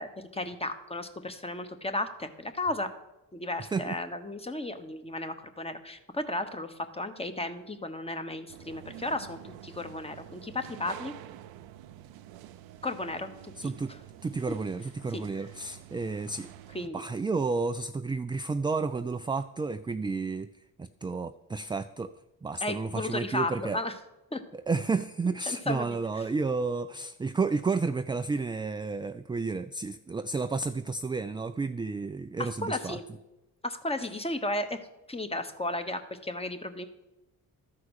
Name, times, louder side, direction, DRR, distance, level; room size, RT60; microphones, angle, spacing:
voice 1, 0.0-2.9 3.3-11.1 12.8-13.7 15.1-15.2 16.7-17.0 22.6-23.9 24.3-24.4 25.5-26.0 32.4-33.0 33.6-34.8 35.1-36.9, left 2 dB, 15° left, 8 dB, 1.1 m, -34 dB
voice 2, 3.6-3.9 13.6-13.9 14.2-16.5 16.9-20.5 20.8-22.1 22.4-23.8 24.5-33.0, right 4 dB, 15° right, 10 dB, 0.3 m, -31 dB
sound 1, 8.5-16.9, right 12 dB, 85° right, 0.6 m, -48 dB
13.0 x 4.7 x 6.4 m, 0.98 s
supercardioid pair, 60°, 36 cm